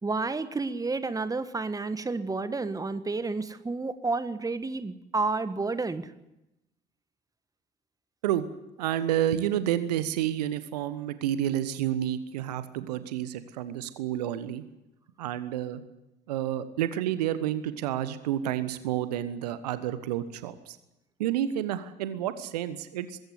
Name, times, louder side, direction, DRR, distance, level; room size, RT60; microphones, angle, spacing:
voice 1, 0.0-6.1, right 3 dB, 15° right, 12 dB, 1.5 m, -30 dB
voice 2, 8.8-14.6 15.2-15.8 16.3-20.8 21.2-23.2, right 11 dB, 70° right, 13 dB, 1.2 m, -30 dB
21.0 x 16.0 x 9.6 m, 0.94 s
figure-of-eight pair, 55°, 21 cm